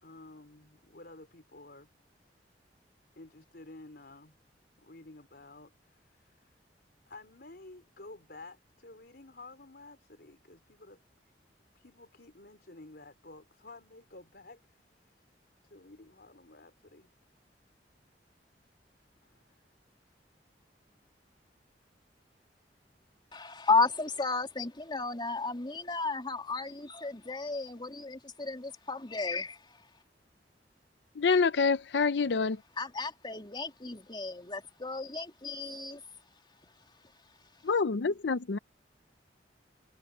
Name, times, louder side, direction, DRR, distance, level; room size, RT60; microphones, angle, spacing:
voice 1, 0.0-1.9 3.2-4.4 4.8-6.5 7.1-11.0 11.7-15.2 15.6-17.1 19.2-19.5, left 2 dB, 60° left, 4.4 m, -52 dB
voice 2, 23.3-29.8 32.8-36.0, left 3 dB, 25° left, 3.2 m, -33 dB
voice 3, 31.2-32.6 37.6-38.6, left 4 dB, 80° left, 0.6 m, -27 dB
head